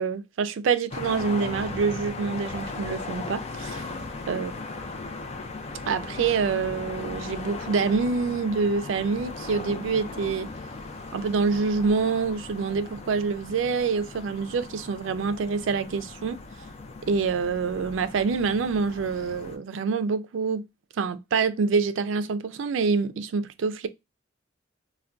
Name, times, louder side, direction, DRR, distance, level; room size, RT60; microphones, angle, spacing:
voice 1, 0.0-3.8 4.3-4.5 5.9-10.5 11.1-16.4 17.1-20.7 21.0-23.9, right 5 dB, 75° right, 0.4 m, -26 dB
sound 1, 0.9-19.6, left 3 dB, 35° left, 0.4 m, -38 dB
3.4 x 2.2 x 2.4 m
head